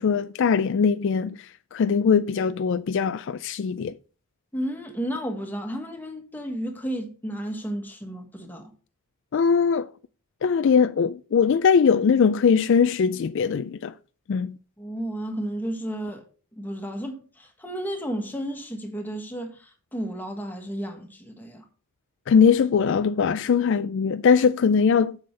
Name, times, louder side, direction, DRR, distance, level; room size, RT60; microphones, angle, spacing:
voice 1, 0.0-4.0 9.3-9.9 10.4-13.9 14.3-14.6 22.3-25.2, left 6 dB, 55° left, 0.3 m, -21 dB
voice 2, 4.5-8.7 14.8-16.2 16.5-21.7, equal, 10° left, 1.4 m, -32 dB
7.6 x 7.1 x 3.3 m
head